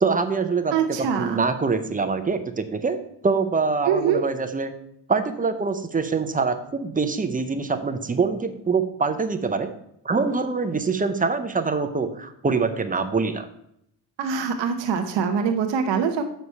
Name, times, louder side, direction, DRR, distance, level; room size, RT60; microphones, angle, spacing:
voice 1, 0.0-3.0 3.2-4.7 5.1-9.7 10.0-13.5, right 4 dB, 20° right, 8 dB, 0.6 m, -24 dB
voice 2, 0.7-1.4 3.9-4.2 14.2-16.3, right 6 dB, 80° right, 5 dB, 0.9 m, -24 dB
6.7 x 4.8 x 5.5 m, 0.74 s
cardioid pair, 120°, 42 cm